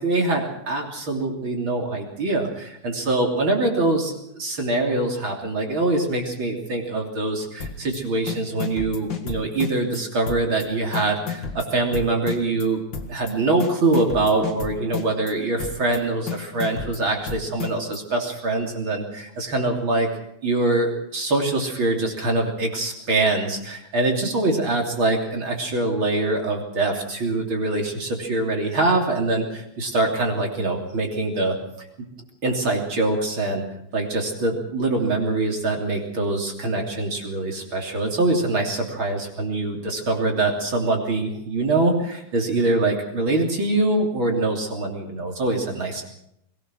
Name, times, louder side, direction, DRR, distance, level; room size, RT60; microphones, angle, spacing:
voice 1, 0.0-12.8 13.1-20.1 20.4-31.5 32.0-32.1 32.4-33.6 33.9-46.0, right 2 dB, 35° right, 1 dB, 3.4 m, -24 dB
sound 1, 7.6-8.0 8.3-10.0 10.3-10.7 10.9-12.7 12.9-13.3 13.6-15.3 15.6-16.0 16.3-18.0, left 6 dB, 45° left, 1.7 m, -32 dB
22.5 x 18.5 x 6.3 m, 0.77 s
omnidirectional pair, 4.5 m